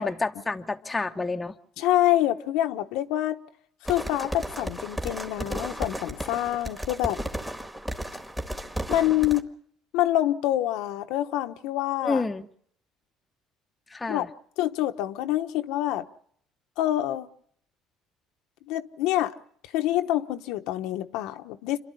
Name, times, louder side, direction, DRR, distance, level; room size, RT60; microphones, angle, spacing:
voice 1, 0.0-1.6 12.0-12.5 13.9-14.3, left 3 dB, 15° left, 0.9 m, -29 dB
voice 2, 1.8-3.4 3.9-7.2 8.9-9.5 9.9-12.2 14.1-14.3 14.6-16.1 16.8-17.3 18.7-19.3 19.7-21.8, left 14 dB, 85° left, 1.0 m, -26 dB
sound 1, 3.9-9.4, equal, 5° right, 1.7 m, -34 dB
27.5 x 12.0 x 9.9 m
cardioid pair, 135°, 0 cm